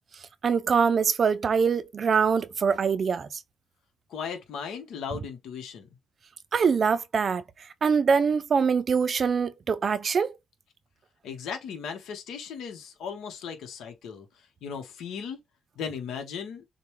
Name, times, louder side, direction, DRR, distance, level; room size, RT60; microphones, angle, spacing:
voice 1, 0.4-3.3 6.5-7.4 7.8-10.3, right 6 dB, 45° right, 0.4 m, -23 dB
voice 2, 4.1-5.9 11.2-15.4 15.8-16.6, left 6 dB, 75° left, 1.0 m, -37 dB
6.7 x 2.2 x 3.1 m
cardioid pair, 90°, 0 cm